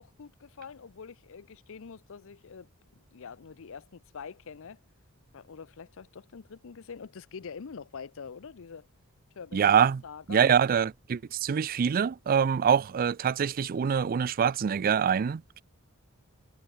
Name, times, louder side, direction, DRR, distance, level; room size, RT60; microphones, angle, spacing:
voice 1, 0.0-2.7 3.1-4.8 5.3-8.9 9.4-9.7 10.0-10.5, left 6 dB, 65° left, 0.6 m, -45 dB
voice 2, 9.5-10.0 10.3-15.6, right 7 dB, 40° right, 0.4 m, -25 dB
head